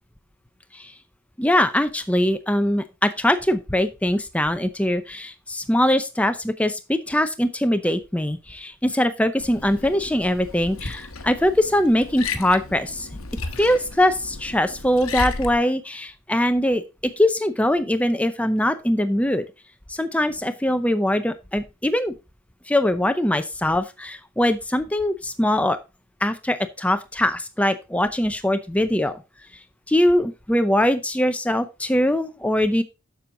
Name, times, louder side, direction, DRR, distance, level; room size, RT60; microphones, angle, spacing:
voice 1, 1.4-13.1 13.6-19.4 19.9-22.1 22.7-25.8 26.2-29.2 29.9-32.8, left 1 dB, 5° left, 9 dB, 0.6 m, -22 dB
Liquid, 9.4-15.5, left 4 dB, 70° left, 1.0 m, -34 dB
7.3 x 7.0 x 3.8 m, 0.27 s
head